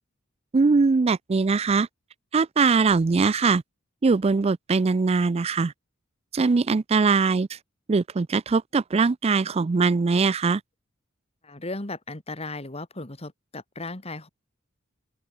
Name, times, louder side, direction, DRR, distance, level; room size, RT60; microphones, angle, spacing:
voice 1, 0.5-1.9 2.3-3.6 4.0-5.7 6.3-7.6 7.9-10.6, right 4 dB, 30° right, 0.4 m, -21 dB
voice 2, 11.4-14.3, left 2 dB, 30° left, 2.2 m, -36 dB
open air
head